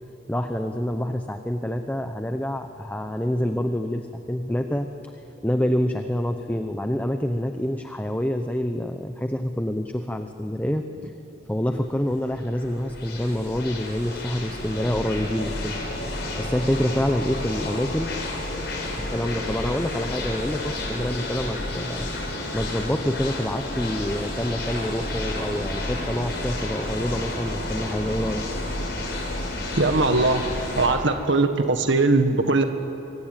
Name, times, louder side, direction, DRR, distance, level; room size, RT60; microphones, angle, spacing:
voice 1, 0.3-4.9 5.4-11.1 11.5-15.8 16.4-18.2 19.1-22.1 22.5-28.4, equal, 10° left, 6 dB, 0.9 m, -27 dB
sound 1, 11.8-30.9, left 1 dB, 55° left, 6.1 m, -31 dB
voice 2, 29.8-30.4 30.8-32.6, right 3 dB, 70° right, 6 dB, 1.6 m, -20 dB
25.5 x 24.5 x 9.1 m, 2.8 s
head